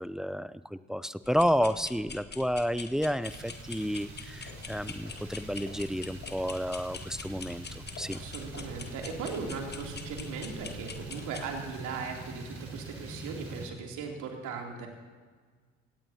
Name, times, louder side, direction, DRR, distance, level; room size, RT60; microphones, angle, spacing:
voice 1, 0.0-8.2, equal, ahead, 15 dB, 0.6 m, -31 dB
sound 1, 1.2-11.6, left 5 dB, 35° left, 1.4 m, -45 dB
sound 2, 3.2-13.7, right 2 dB, 45° right, 5.0 m, -45 dB
sound 3, 4.2-11.3, left 5 dB, 60° left, 2.7 m, -52 dB
voice 2, 8.1-14.9, right 5 dB, 70° right, 1 dB, 3.0 m, -38 dB
24.0 x 17.5 x 2.8 m, 1.5 s
hypercardioid pair, 50°, 31 cm